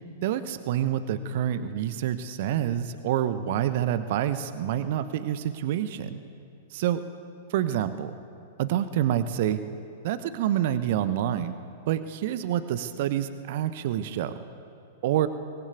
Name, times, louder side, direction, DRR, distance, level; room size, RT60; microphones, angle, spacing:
voice 1, 0.2-6.2 6.7-7.0 7.5-8.2 8.6-9.6 10.0-11.5 11.9-14.4 15.0-15.3, right 11 dB, 50° right, 11 dB, 1.1 m, -27 dB
24.5 x 19.5 x 8.5 m, 2.6 s
figure-of-eight pair, 100°, 0 cm